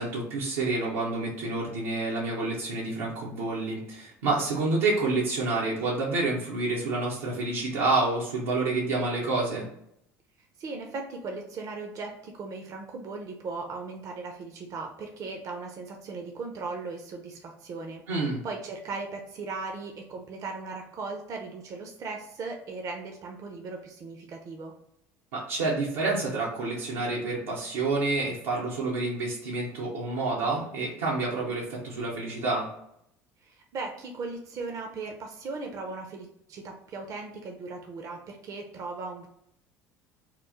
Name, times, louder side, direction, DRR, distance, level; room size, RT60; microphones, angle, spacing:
voice 1, 0.0-9.7 18.1-18.4 25.3-32.7, right 3 dB, 90° right, -5 dB, 0.7 m, -28 dB
voice 2, 10.6-24.7 33.4-39.3, right 3 dB, 50° right, 3 dB, 0.5 m, -38 dB
3.0 x 2.0 x 3.5 m, 0.74 s
supercardioid pair, 90°, 7 cm